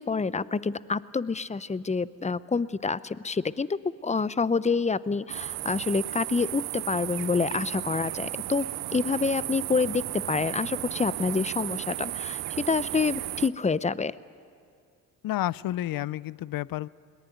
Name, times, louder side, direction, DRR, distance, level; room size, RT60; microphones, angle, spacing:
voice 1, 0.0-12.4 12.7-14.1, left 4 dB, 20° left, 17 dB, 0.6 m, -27 dB
sound 1, 5.3-13.5, right 16 dB, 90° right, 0.7 m, -34 dB
voice 2, 15.2-16.9, left 14 dB, 65° left, 22 dB, 0.5 m, -30 dB
21.5 x 18.5 x 9.3 m, 2.2 s
supercardioid pair, 55°, 37 cm